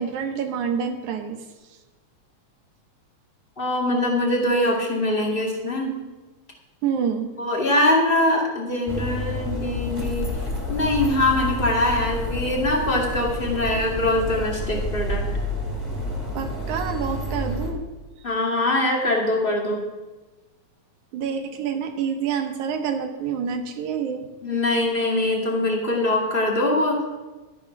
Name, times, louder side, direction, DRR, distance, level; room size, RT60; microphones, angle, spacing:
voice 1, 0.0-1.4 6.8-7.3 16.3-17.8 21.1-24.3, right 7 dB, 85° right, 5 dB, 2.5 m, -27 dB
voice 2, 3.6-5.9 7.4-10.3 10.7-15.2 18.2-19.8 24.4-27.0, left 1 dB, 20° left, -1 dB, 2.0 m, -23 dB
sound 1, 8.9-17.7, left 1 dB, 5° left, 2.5 m, -29 dB
12.5 x 9.2 x 5.9 m, 1.2 s
omnidirectional pair, 3.3 m